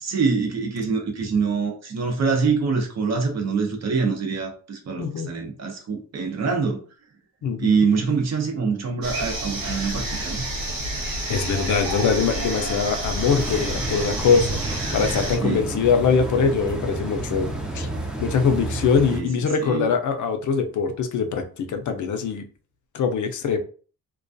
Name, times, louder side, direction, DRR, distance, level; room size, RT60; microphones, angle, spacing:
voice 1, 0.0-6.8 7.6-10.4 15.4-15.6 19.1-19.9, right 5 dB, 50° right, 0.7 m, -25 dB
voice 2, 5.0-5.3 7.4-7.8 11.3-14.6 14.9-17.9 18.2-22.4 22.9-23.6, left 6 dB, 60° left, 0.5 m, -22 dB
sound 1, 9.0-15.4, right 1 dB, 85° right, 1.1 m, -29 dB
sound 2, 13.2-19.2, right 2 dB, ahead, 0.4 m, -31 dB
2.3 x 2.2 x 2.5 m
cardioid pair, 120°, 35 cm